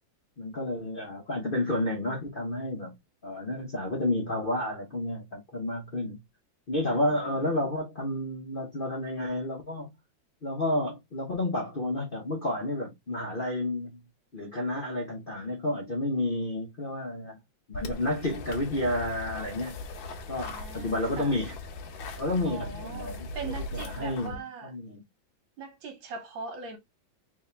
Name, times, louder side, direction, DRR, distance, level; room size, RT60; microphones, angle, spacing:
voice 1, 0.4-2.9 3.2-6.2 6.7-9.9 10.4-14.0 14.3-17.4 17.7-19.8 20.3-21.5 22.2-23.2 23.4-25.0, left 1 dB, 50° left, 0.6 m, -31 dB
voice 2, 6.9-7.5 20.4-21.4 22.4-24.7 25.6-26.8, right 4 dB, 75° right, 1.7 m, -41 dB
sound 1, 17.7-24.4, left 2 dB, 75° left, 1.4 m, -39 dB
3.5 x 2.7 x 3.2 m
omnidirectional pair, 2.2 m